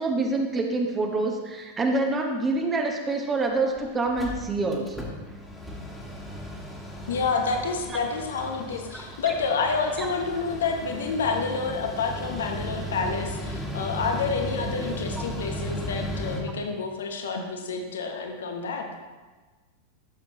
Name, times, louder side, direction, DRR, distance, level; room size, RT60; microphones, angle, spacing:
voice 1, 0.0-5.1 8.9-9.0 10.0-10.1, right 3 dB, 20° right, 2 dB, 1.0 m, -26 dB
Mechanical fan, 3.4-3.5 3.8-3.9 4.1-16.4, equal, 5° left, 1.7 m, -36 dB
voice 2, 7.1-18.8, left 4 dB, 65° left, 3 dB, 1.0 m, -29 dB
12.5 x 7.1 x 3.0 m, 1.3 s
figure-of-eight pair, 90°, 0 cm